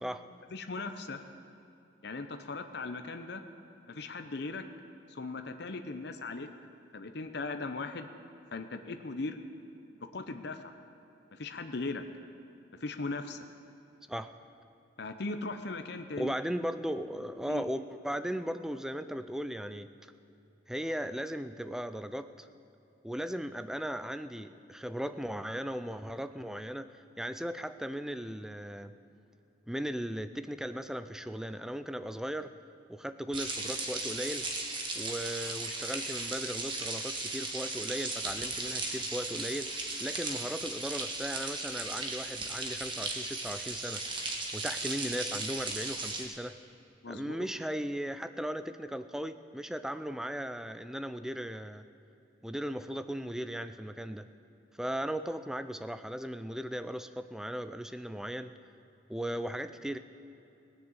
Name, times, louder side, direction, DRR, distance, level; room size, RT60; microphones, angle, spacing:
voice 1, 0.5-1.2 2.0-3.4 3.9-4.7 5.1-6.5 6.9-8.1 8.5-9.4 10.1-10.7 11.3-12.0 12.8-13.4 15.0-16.3 17.5-17.7 47.0-47.5, left 3 dB, 60° left, 8 dB, 0.7 m, -38 dB
voice 2, 16.2-19.9 20.7-22.5 23.0-29.0 29.7-32.5 32.9-34.5 34.9-46.6 47.1-51.8 52.4-54.3 54.8-58.5 59.1-60.0, equal, 5° right, 11 dB, 0.4 m, -37 dB
sound 1, 33.3-46.2, right 2 dB, 25° right, 1.5 m, -36 dB
18.0 x 6.6 x 8.8 m, 2.8 s
head